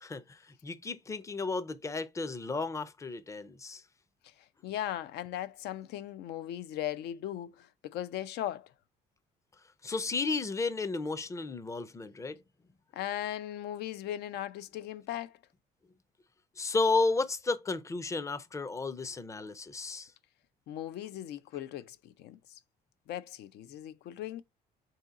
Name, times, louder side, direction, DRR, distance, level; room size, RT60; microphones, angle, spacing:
voice 1, 0.0-3.8 9.8-12.4 16.6-20.1, left 3 dB, 20° left, 0.5 m, -33 dB
voice 2, 4.6-8.7 12.9-15.4 20.7-22.4 23.1-24.4, left 12 dB, 75° left, 0.5 m, -38 dB
3.7 x 2.8 x 3.5 m
cardioid pair, 110°, 17 cm